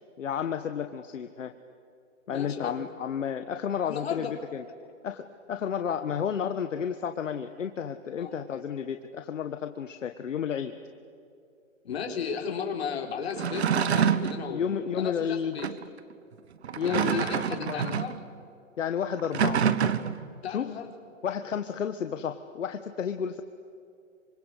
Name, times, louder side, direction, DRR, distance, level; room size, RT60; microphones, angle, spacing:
voice 1, 0.2-1.5 2.3-4.6 5.0-10.8 14.5-15.6 16.7-18.0 18.8-19.6 20.5-20.7 21.2-23.4, left 8 dB, 70° left, 7 dB, 1.5 m, -32 dB
voice 2, 2.3-2.8 3.9-4.3 8.2-8.3 11.8-15.7 16.8-18.2 20.4-20.9, left 6 dB, 55° left, 2 dB, 4.2 m, -35 dB
sound 1, 13.3-14.4 15.6-15.8 16.6-18.2 19.2-20.3, right 7 dB, 55° right, 1.4 m, -26 dB
26.0 x 25.5 x 8.3 m, 2.5 s
hypercardioid pair, 170°, 38 cm